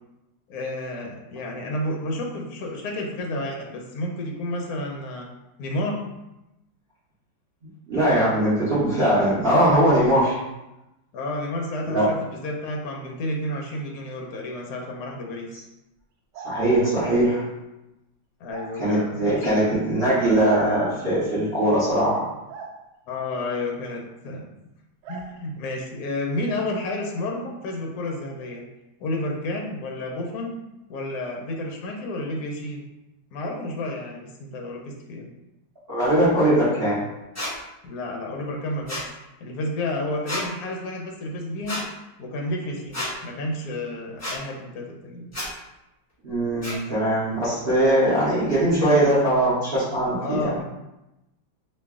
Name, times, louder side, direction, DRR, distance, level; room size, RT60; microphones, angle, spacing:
voice 1, 0.5-5.3 5.6-6.0 11.1-15.5 18.4-19.5 23.1-24.5 25.1-28.6 29.0-30.6 30.9-32.8 33.3-35.3 37.8-41.8 42.2-45.3 50.2-50.6, left 1 dB, 70° left, 0 dB, 0.9 m, -31 dB
voice 2, 7.9-10.4 11.9-12.1 16.4-17.4 18.8-22.3 35.9-37.0 46.2-50.6, right 1 dB, 45° right, -10 dB, 0.8 m, -21 dB
sound 1, 16.3-16.9 18.5-18.7 20.5-21.1 22.5-22.7 25.0-25.3, right 5 dB, 75° right, 1.1 m, -39 dB
sound 2, 37.4-37.5 38.9-39.1 40.3-40.4 41.7-41.8 42.9-43.1 44.2-44.4 45.3-45.5 46.6-46.8, left 1 dB, 25° left, 0.3 m, -30 dB
3.1 x 2.6 x 3.5 m, 0.94 s
omnidirectional pair, 2.1 m